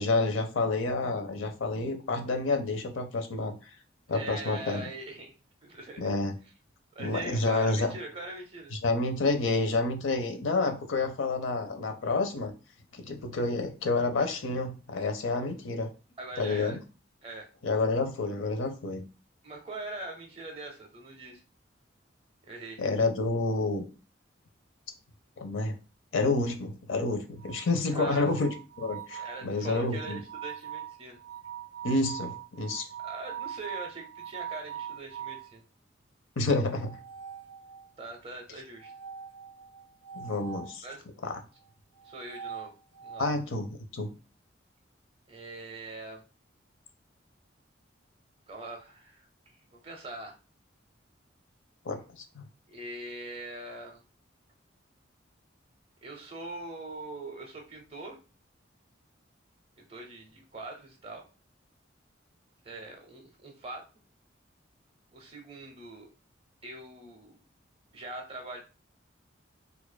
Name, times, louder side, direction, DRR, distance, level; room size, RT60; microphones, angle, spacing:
voice 1, 0.0-3.6 4.1-4.9 6.0-6.3 7.0-7.9 8.7-12.5 12.9-15.9 16.4-16.8 17.6-19.0 22.8-23.8 25.4-25.7 26.1-30.2 31.8-32.8 36.4-37.0 40.1-40.8 41.2-41.4 43.2-44.1 51.9-52.5, left 3 dB, 90° left, 7 dB, 0.6 m, -29 dB
voice 2, 4.1-5.3 5.6-6.1 6.9-8.7 16.2-16.8 17.2-17.4 19.4-21.4 22.4-22.8 27.9-28.3 29.2-31.2 33.0-35.6 38.0-38.9 40.8-41.0 42.0-42.7 43.0-43.3 45.3-46.2 48.5-49.6 49.8-50.3 52.7-54.0 56.0-58.2 59.9-61.2 62.6-63.8 65.1-66.1 66.6-67.4 67.9-68.6, right 2 dB, 30° right, 2 dB, 0.7 m, -42 dB
sound 1, 27.4-35.5 36.8-38.0 38.8-40.8 42.0-43.3, right 9 dB, 80° right, 0.4 m, -42 dB
4.6 x 2.5 x 2.2 m, 0.33 s
head